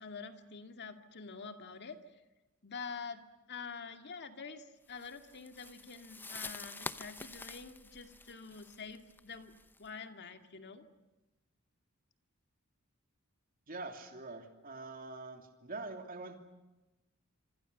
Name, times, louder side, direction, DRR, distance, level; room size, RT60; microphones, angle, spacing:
voice 1, 0.0-2.0 2.6-9.5 9.8-10.9, left 5 dB, 50° left, 7 dB, 2.3 m, -47 dB
sound 1, 5.0-9.9, left 3 dB, 10° left, 0.8 m, -47 dB
voice 2, 13.7-16.4, right 3 dB, 40° right, 5 dB, 3.0 m, -44 dB
26.5 x 26.0 x 6.8 m, 1.1 s
head